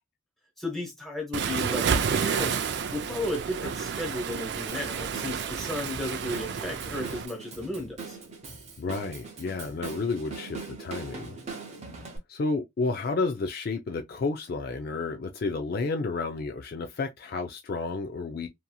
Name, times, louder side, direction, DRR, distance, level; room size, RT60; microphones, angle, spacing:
voice 1, 0.6-2.6 2.9-8.2, left 1 dB, ahead, 0.9 m, -34 dB
Waves surf, 1.3-7.3, right 6 dB, 55° right, 0.3 m, -30 dB
Drum kit / Drum, 4.7-12.2, right 4 dB, 35° right, 0.8 m, -42 dB
voice 2, 8.8-11.3 12.3-18.5, left 3 dB, 45° left, 0.3 m, -31 dB
2.8 x 2.6 x 2.2 m
head